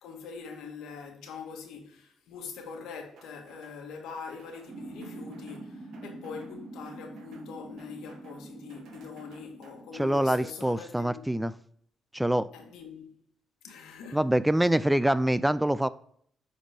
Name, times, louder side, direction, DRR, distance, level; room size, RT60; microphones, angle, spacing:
voice 1, 0.0-11.4 12.5-13.1 13.6-14.2, left 5 dB, 85° left, 1.5 m, -43 dB
sound 1, 3.2-3.8 4.1-4.7 5.0-5.6 5.9-6.6 6.8-7.5 7.8-8.4 8.7-10.2, right 4 dB, 75° right, 1.3 m, -57 dB
sound 2, 4.7-10.3, right 2 dB, 30° right, 1.1 m, -45 dB
voice 2, 9.9-11.5 12.1-12.5 14.1-15.9, right 1 dB, 5° right, 0.3 m, -25 dB
7.8 x 4.2 x 3.4 m
cardioid pair, 90°, 0 cm